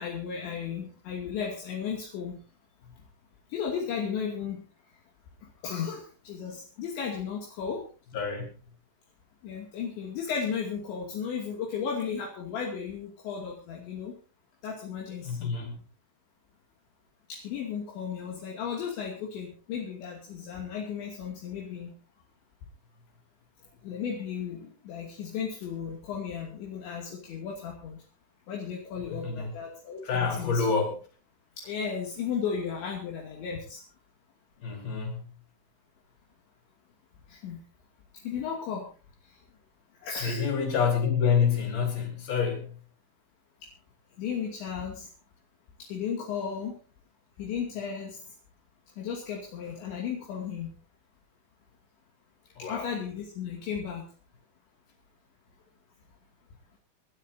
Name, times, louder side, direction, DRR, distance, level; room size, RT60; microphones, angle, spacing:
voice 1, 0.0-2.4 3.5-4.6 5.6-7.8 9.4-14.1 14.6-15.5 17.3-22.0 23.8-28.0 28.5-30.7 31.6-33.8 37.3-37.6 38.1-38.9 39.2-39.4 40.0-40.5 44.2-45.1 45.8-46.8 47.4-48.2 49.0-50.7 52.6-54.1, left 7 dB, 70° left, -2 dB, 4.8 m, -35 dB
voice 2, 8.1-8.5 15.2-15.8 29.0-29.5 30.0-31.0 34.6-35.2 40.2-42.7 52.6-52.9, left 6 dB, 50° left, 1 dB, 6.3 m, -27 dB
28.0 x 12.5 x 2.8 m, 0.36 s
omnidirectional pair, 5.6 m